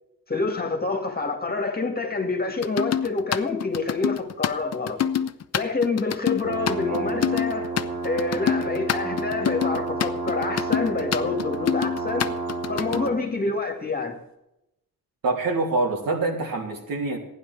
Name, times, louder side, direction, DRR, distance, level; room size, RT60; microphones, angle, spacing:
voice 1, 0.3-5.0 5.5-7.7 8.0-12.3 12.7-14.2, left 3 dB, 25° left, 2.2 m, -27 dB
sound 1, 2.6-13.1, left 9 dB, 45° left, 0.7 m, -26 dB
sound 2, 6.4-13.2, right 3 dB, 50° right, 2.6 m, -30 dB
voice 2, 15.2-17.2, right 3 dB, 70° right, 3.3 m, -25 dB
15.5 x 10.5 x 4.8 m
wide cardioid pair, 145°, 36 cm